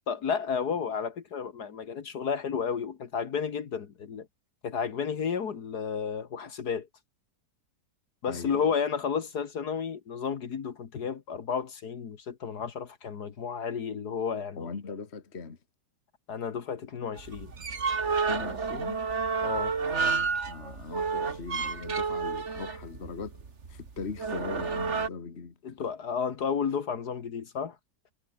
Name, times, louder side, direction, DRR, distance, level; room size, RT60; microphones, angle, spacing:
voice 1, 0.1-4.3 4.6-6.9 8.2-14.7 16.3-17.5 19.4-19.8 25.6-27.8, left 6 dB, 65° left, 2.1 m, -32 dB
voice 2, 8.3-8.7 14.6-15.6 18.3-19.0 20.4-23.4 23.7-25.5, left 5 dB, 40° left, 2.0 m, -39 dB
sound 1, 17.2-25.1, right 5 dB, 45° right, 2.1 m, -30 dB
omnidirectional pair, 1.8 m